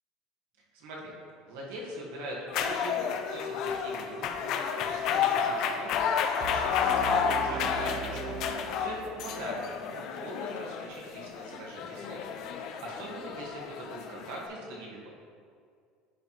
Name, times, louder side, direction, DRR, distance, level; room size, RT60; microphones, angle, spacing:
voice 1, 0.7-1.1 1.5-3.0 3.3-9.6 9.9-15.1, right 1 dB, 75° right, -3 dB, 1.6 m, -42 dB
sound 1, 2.5-14.5, left 7 dB, 45° left, 0.4 m, -31 dB
sound 2, 6.4-9.5, right 6 dB, 35° right, 0.7 m, -39 dB
10.0 x 4.2 x 3.1 m, 2.2 s
cardioid pair, 170°, 0 cm